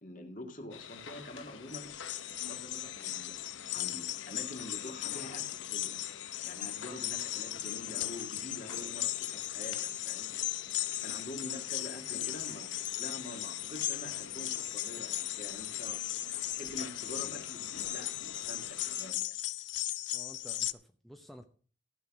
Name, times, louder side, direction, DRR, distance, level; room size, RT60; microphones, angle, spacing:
voice 1, 0.0-2.0 2.4-3.4 3.7-6.0 6.5-10.4 11.0-16.0 16.5-19.4, left 1 dB, 45° left, 5 dB, 1.9 m, -46 dB
sound 1, 0.7-19.1, left 6 dB, 85° left, 0.9 m, -48 dB
sound 2, 1.7-20.7, left 15 dB, 65° left, 0.5 m, -37 dB
voice 2, 20.1-21.5, equal, ahead, 5 dB, 0.7 m, -52 dB
14.5 x 5.8 x 5.9 m, 0.41 s
head